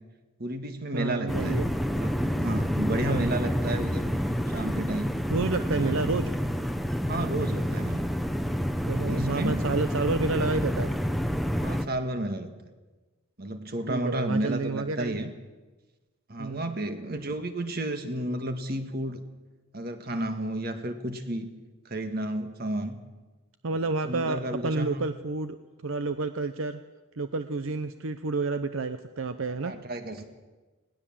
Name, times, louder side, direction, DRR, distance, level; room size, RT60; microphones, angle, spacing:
voice 1, 0.4-1.6 1.9-4.1 4.5-5.2 5.7-6.0 7.1-8.0 9.0-9.6 11.5-12.5 13.4-15.3 16.3-19.2 19.7-21.5 21.8-23.0 24.0-25.1 29.6-30.2, right 1 dB, 45° right, 7 dB, 1.7 m, -32 dB
voice 2, 0.9-1.7 3.1-3.3 5.3-6.3 8.9-10.9 13.9-15.3 16.4-16.7 23.6-25.6 25.8-26.8 27.1-29.7, right 3 dB, 70° right, 10 dB, 0.7 m, -30 dB
sound 1, 1.3-11.9, equal, ahead, 0.7 m, -28 dB
20.0 x 17.5 x 7.4 m, 1.2 s
head